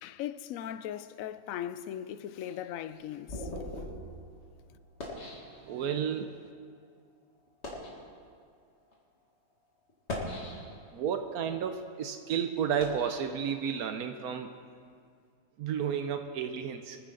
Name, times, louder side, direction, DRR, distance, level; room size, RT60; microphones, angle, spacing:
voice 1, 0.0-3.5, left 11 dB, 70° left, 0.9 m, -38 dB
sound 1, 2.4-6.1 6.8-6.9 7.5-8.0 8.8-8.9 9.9-11.0 11.5-14.0, left 1 dB, 50° left, 2.4 m, -42 dB
voice 2, 5.7-6.3 10.9-14.5 15.6-17.0, right 8 dB, 80° right, 1.2 m, -32 dB
24.5 x 9.8 x 3.8 m
omnidirectional pair, 1.6 m